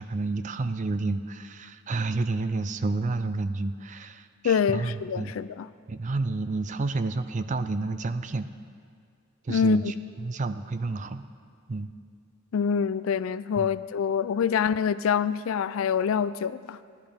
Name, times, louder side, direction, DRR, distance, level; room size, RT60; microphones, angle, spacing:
voice 1, 0.0-5.3 5.9-8.5 9.4-9.9 10.2-11.2 11.7-11.9 13.6-13.8, right 3 dB, 35° right, 11 dB, 0.4 m, -30 dB
voice 2, 4.4-5.7 9.5-9.9 12.5-16.8, left 7 dB, 75° left, 15 dB, 0.3 m, -25 dB
16.5 x 11.0 x 3.5 m, 2.1 s
head